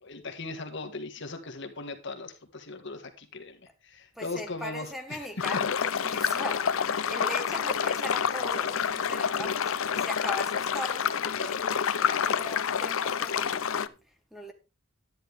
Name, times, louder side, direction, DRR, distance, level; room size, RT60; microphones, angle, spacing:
voice 1, 0.0-5.3, left 3 dB, 60° left, 1.8 m, -39 dB
voice 2, 4.1-14.5, equal, ahead, 1.4 m, -40 dB
sound 1, 5.4-13.9, left 7 dB, 75° left, 0.6 m, -28 dB
11.0 x 10.0 x 3.5 m
head